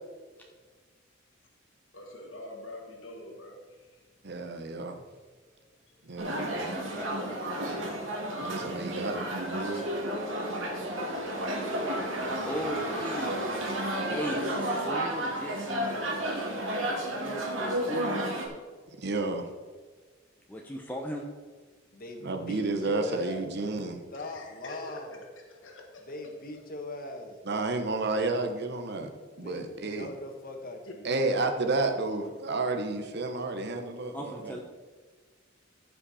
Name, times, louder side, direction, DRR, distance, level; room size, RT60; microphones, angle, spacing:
voice 1, 1.9-4.1 5.9-6.0 24.1-25.2 25.5-26.0 30.9-31.0, left 1 dB, 70° left, 0 dB, 1.6 m, -45 dB
voice 2, 4.2-5.0 6.1-6.8 8.4-9.8 19.0-19.5 22.2-24.0 27.5-29.1 29.4-30.1 31.0-34.6, right 3 dB, 60° right, 5 dB, 1.1 m, -31 dB
sound 1, 6.2-18.5, right 1 dB, 80° right, 2.2 m, -32 dB
voice 3, 6.7-7.4 12.5-13.3 14.1-16.1 17.2-18.2 20.5-21.3 34.1-34.6, equal, 10° left, 0 dB, 0.8 m, -38 dB
voice 4, 11.3-12.0 12.5-13.9 21.9-23.5 23.8-25.2 26.1-27.4 29.4-31.4, left 2 dB, 50° left, 4 dB, 1.4 m, -41 dB
14.5 x 5.7 x 4.3 m, 1.4 s
head